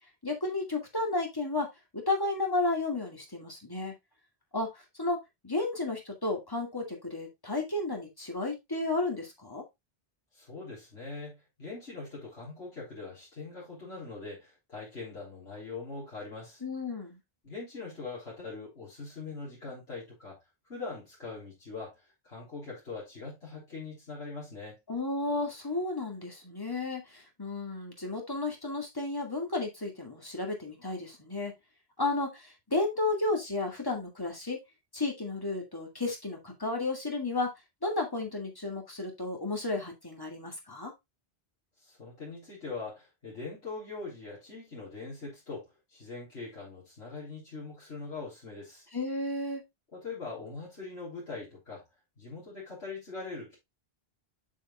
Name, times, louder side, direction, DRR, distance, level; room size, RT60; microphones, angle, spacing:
voice 1, 0.2-1.7 1.9-3.9 4.5-5.2 5.4-9.6 16.6-17.2 24.9-31.5 32.0-34.6 34.9-37.5 37.8-40.9 48.9-49.6, left 2 dB, 20° left, 2.4 m, -32 dB
voice 2, 10.3-16.6 17.4-20.4 20.7-24.8 41.8-48.9 49.9-51.8 52.2-53.6, left 3 dB, 80° left, 4.0 m, -42 dB
7.6 x 7.0 x 2.4 m
omnidirectional pair, 1.1 m